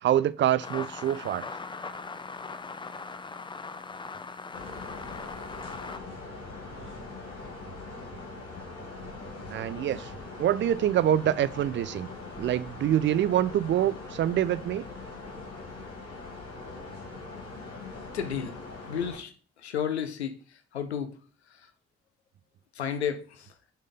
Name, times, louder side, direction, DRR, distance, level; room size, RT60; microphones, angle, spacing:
voice 1, 0.0-1.5 9.5-10.1 10.4-12.1 12.4-14.8, right 11 dB, 35° right, 0.4 m, -25 dB
sound 1, 0.6-6.0, left 4 dB, 15° left, 0.5 m, -40 dB
sound 2, 4.5-19.2, left 3 dB, 50° left, 2.3 m, -42 dB
voice 2, 18.1-18.5 18.9-21.2 21.5-21.7 22.7-23.5, left 8 dB, 85° left, 0.7 m, -33 dB
6.1 x 5.7 x 3.8 m
figure-of-eight pair, 40°, 32 cm